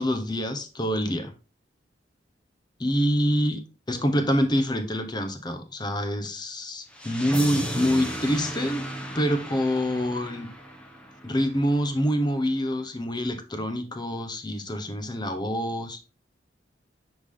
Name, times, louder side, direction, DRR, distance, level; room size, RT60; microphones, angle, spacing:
voice 1, 0.0-1.3 2.8-8.8 9.1-10.5 11.2-16.0, equal, 25° left, 7 dB, 1.0 m, -26 dB
sound 1, 6.9-11.9, equal, 5° left, 1.2 m, -35 dB
10.0 x 3.5 x 3.8 m, 0.33 s
head